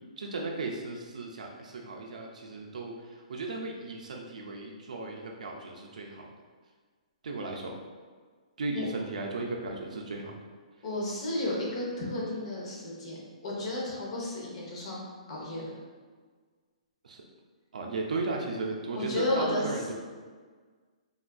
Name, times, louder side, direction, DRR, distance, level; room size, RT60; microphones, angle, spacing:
voice 1, 0.2-6.3 7.2-7.7 8.6-10.3 17.0-17.2 17.7-20.0, right 3 dB, 85° right, 0 dB, 0.4 m, -36 dB
voice 2, 10.8-13.2 13.4-15.0 15.3-15.7 18.9-19.6, left 1 dB, 45° left, -4 dB, 0.8 m, -32 dB
3.4 x 2.4 x 2.2 m, 1.5 s
hypercardioid pair, 165°, 4 cm